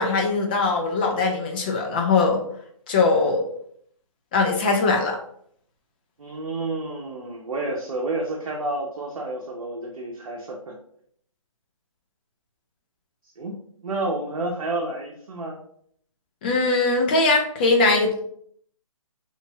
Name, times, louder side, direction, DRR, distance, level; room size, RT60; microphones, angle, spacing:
voice 1, 0.0-2.4 2.9-3.4 4.3-5.2 16.4-18.2, left 3 dB, 15° left, 1 dB, 0.4 m, -21 dB
voice 2, 6.2-10.7 13.4-13.6 13.8-15.6, right 2 dB, 70° right, -1 dB, 0.8 m, -30 dB
3.9 x 3.0 x 2.3 m, 0.64 s
hypercardioid pair, 155°, 18 cm